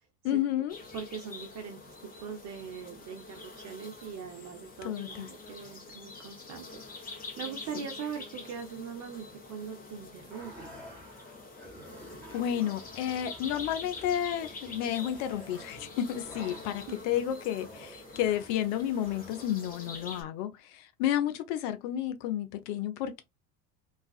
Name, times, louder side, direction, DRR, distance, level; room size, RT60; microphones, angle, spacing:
voice 1, 0.2-0.8 4.8-5.3 12.3-23.2, left 11 dB, 55° left, 0.6 m, -31 dB
sound 1, 0.7-20.2, left 3 dB, 20° left, 0.9 m, -46 dB
voice 2, 0.9-10.8 16.9-17.3, right 7 dB, 35° right, 0.7 m, -42 dB
sound 2, 10.3-19.4, right 1 dB, 5° left, 1.4 m, -50 dB
2.4 x 2.4 x 2.3 m
hypercardioid pair, 80°, 46 cm